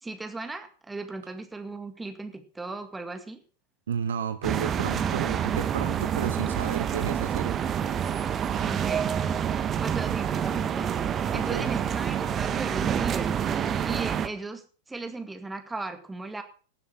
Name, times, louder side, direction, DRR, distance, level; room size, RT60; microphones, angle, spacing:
voice 1, 0.0-3.4 8.6-9.1 9.7-13.4 13.8-16.4, right 3 dB, 10° right, 2.0 m, -37 dB
voice 2, 3.9-7.6 11.3-11.7, right 8 dB, 70° right, 0.9 m, -32 dB
sound 1, 4.4-14.3, right 8 dB, 25° right, 1.2 m, -27 dB
18.5 x 7.1 x 5.9 m
figure-of-eight pair, 95°, 0 cm